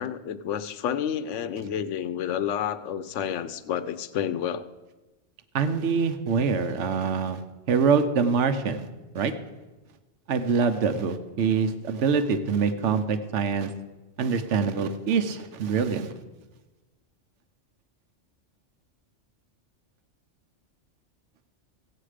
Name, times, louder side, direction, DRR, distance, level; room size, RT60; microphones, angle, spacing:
voice 1, 0.0-4.6, left 9 dB, 85° left, 13 dB, 1.0 m, -30 dB
voice 2, 5.5-7.4 7.7-8.9 9.1-9.3 10.3-13.7 14.2-16.1, right 5 dB, 80° right, 9 dB, 1.2 m, -25 dB
15.5 x 8.7 x 5.0 m, 1.2 s
omnidirectional pair, 1.2 m